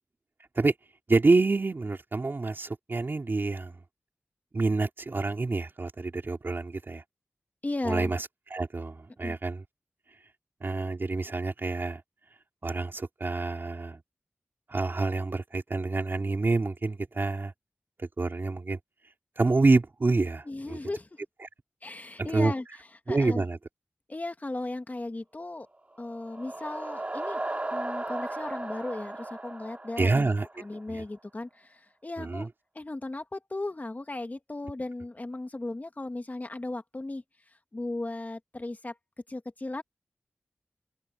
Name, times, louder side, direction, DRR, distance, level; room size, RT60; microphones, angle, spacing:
voice 1, 1.1-3.8 4.5-7.0 7.8-8.3 8.5-9.6 10.6-12.0 12.6-14.0 14.7-17.5 18.0-18.8 19.4-20.8 22.2-22.5 23.1-23.6 30.0-30.5 30.9-31.0 32.2-32.5, right 3 dB, 55° right, 3.9 m, -27 dB
voice 2, 7.6-8.1 9.2-9.4 20.5-21.2 21.8-23.4 24.1-25.7 26.0-27.4 27.7-32.5 32.7-37.2 37.7-38.9 39.3-39.8, left 2 dB, 40° left, 2.0 m, -36 dB
sound 1, 25.9-30.8, right 2 dB, 30° right, 2.6 m, -36 dB
cardioid pair, 50°, 4 cm